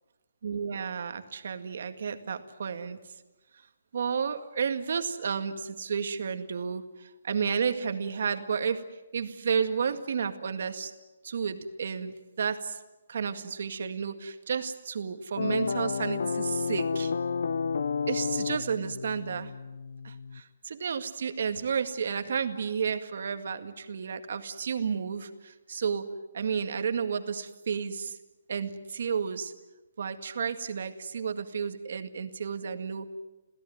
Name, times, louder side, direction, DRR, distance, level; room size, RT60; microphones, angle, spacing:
voice 1, 0.4-3.0 3.9-8.8 9.1-10.9 11.2-12.8 13.1-17.1 18.1-19.5 20.0-26.1 26.3-28.2 28.5-29.5 30.0-33.1, right 6 dB, 55° right, 8 dB, 2.0 m, -32 dB
sound 1, 15.4-20.4, left 5 dB, 65° left, 1.1 m, -31 dB
27.5 x 16.5 x 9.3 m, 1.1 s
hypercardioid pair, 175°, 0 cm